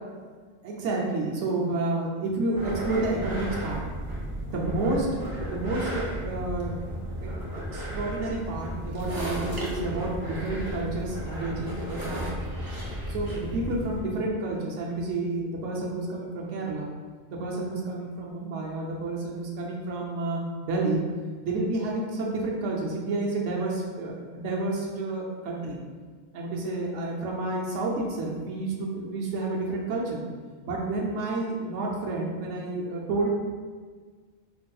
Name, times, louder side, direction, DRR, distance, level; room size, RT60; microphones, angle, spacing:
voice 1, 0.6-3.8 4.5-5.1 5.4-6.8 7.2-12.3 13.1-16.9 17.3-21.0 21.4-25.8 26.3-30.2 30.6-33.3, right 2 dB, 80° right, -2 dB, 0.9 m, -30 dB
sound 1, 2.5-14.0, equal, 25° right, 0.5 m, -34 dB
4.5 x 2.6 x 2.2 m, 1.5 s
omnidirectional pair, 1.2 m